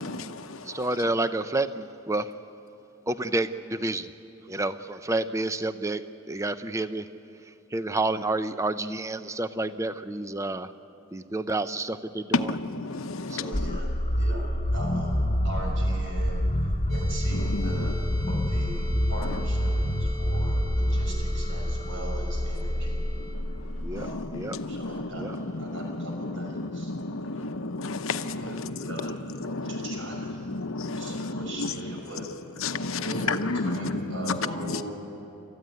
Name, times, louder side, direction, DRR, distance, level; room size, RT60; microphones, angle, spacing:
voice 1, 0.0-0.8 12.3-13.8 17.3-17.9 23.6-31.7 32.6-34.4 34.6-34.8, left 3 dB, 85° left, 0.9 m, -32 dB
voice 2, 0.7-2.2 3.1-4.1 4.5-6.0 6.3-7.0 7.7-10.7 11.1-12.5 13.3-13.5 23.8-24.1 24.3-24.6 25.2-25.4, right 2 dB, 15° right, 0.5 m, -29 dB
voice 3, 13.4-16.4 16.9-23.0 23.9-24.4 24.7-26.9 27.2-27.5 28.4-29.1 29.5-30.4 31.0-32.3 32.9-34.8, right 1 dB, 70° right, 5.9 m, -39 dB
sound 1, 13.5-24.4, equal, 30° left, 1.2 m, -27 dB
sound 2, 16.9-23.4, equal, 35° right, 2.4 m, -44 dB
28.5 x 14.0 x 9.5 m
head